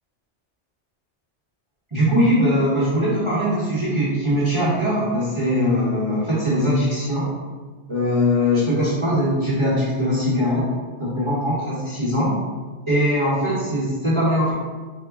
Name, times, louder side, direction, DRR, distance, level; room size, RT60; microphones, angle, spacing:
voice 1, 1.9-7.3 7.9-10.6 11.0-12.3 12.9-14.5, equal, 30° right, -9 dB, 0.9 m, -21 dB
4.5 x 2.1 x 3.5 m, 1.4 s
omnidirectional pair, 1.2 m